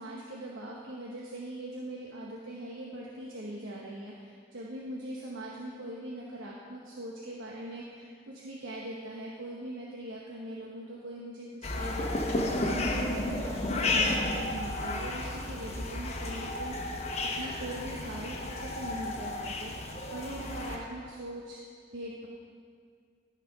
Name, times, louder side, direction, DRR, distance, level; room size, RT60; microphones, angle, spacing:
voice 1, 0.0-21.6 21.9-22.3, right 1 dB, 75° right, -4 dB, 1.1 m, -41 dB
sound 1, 11.6-20.8, left 2 dB, 35° left, 1.0 m, -32 dB
13.0 x 5.0 x 5.8 m, 2.1 s
head